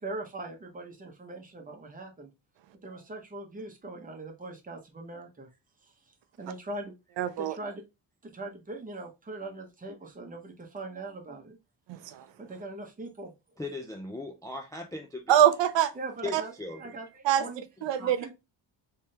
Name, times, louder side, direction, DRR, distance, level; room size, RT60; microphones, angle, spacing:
voice 1, 0.0-2.3 2.8-5.5 6.4-6.9 7.4-7.8 8.2-11.6 12.4-13.3 16.0-16.5 16.8-17.6 18.0-18.3, right 2 dB, 20° right, 0.8 m, -41 dB
voice 2, 7.2-7.6 11.9-12.3 15.3-15.9 16.3-16.4 17.2-17.4 17.8-18.3, right 10 dB, 75° right, 0.5 m, -24 dB
voice 3, 13.6-15.4 16.2-17.1 18.0-18.1, left 2 dB, 10° left, 0.3 m, -38 dB
3.5 x 3.3 x 2.8 m
cardioid pair, 150°, 45 cm